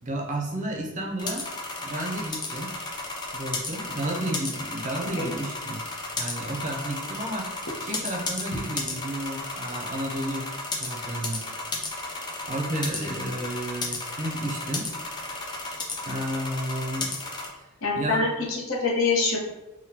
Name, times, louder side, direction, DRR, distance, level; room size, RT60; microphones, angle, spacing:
voice 1, 0.0-1.5 1.8-2.7 3.3-5.8 6.2-7.5 7.8-10.5 10.8-11.4 12.5-14.9 16.1-17.1 17.9-18.2, right 1 dB, 35° right, -1 dB, 0.5 m, -32 dB
sound 1, 1.2-17.5, left 2 dB, 20° left, 0.4 m, -34 dB
voice 2, 17.8-19.4, left 3 dB, 60° left, -3 dB, 0.8 m, -25 dB
3.5 x 2.2 x 2.8 m, 1.0 s
head